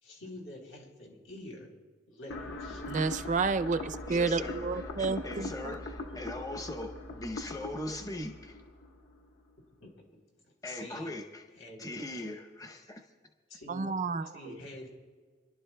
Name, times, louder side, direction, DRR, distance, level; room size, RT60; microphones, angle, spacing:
voice 1, 0.0-1.7 2.1-3.3 9.8-11.1 11.5-11.9 13.5-13.9 14.2-14.9, left 1 dB, 90° left, -1 dB, 3.4 m, -47 dB
sound 1, 2.3-9.3, left 2 dB, 60° left, 1.3 m, -41 dB
voice 2, 2.9-5.7 13.7-14.2, right 4 dB, 40° right, 11 dB, 0.4 m, -30 dB
voice 3, 4.1-8.6 10.6-11.5 11.8-13.1, left 1 dB, 15° left, 4 dB, 0.7 m, -40 dB
30.0 x 11.5 x 2.2 m, 1.5 s
head